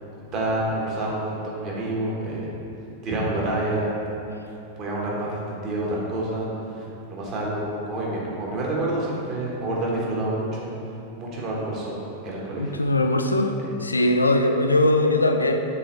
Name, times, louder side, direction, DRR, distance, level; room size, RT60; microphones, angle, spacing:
voice 1, 0.3-2.5 3.0-3.9 4.8-6.8 7.1-10.7 11.2-12.8 13.6-13.7, right 1 dB, 35° right, -4 dB, 1.5 m, -28 dB
voice 2, 12.6-13.5 13.8-15.7, left 1 dB, 80° left, 6 dB, 0.4 m, -20 dB
7.2 x 4.0 x 4.5 m, 2.7 s
figure-of-eight pair, 90°, 0 cm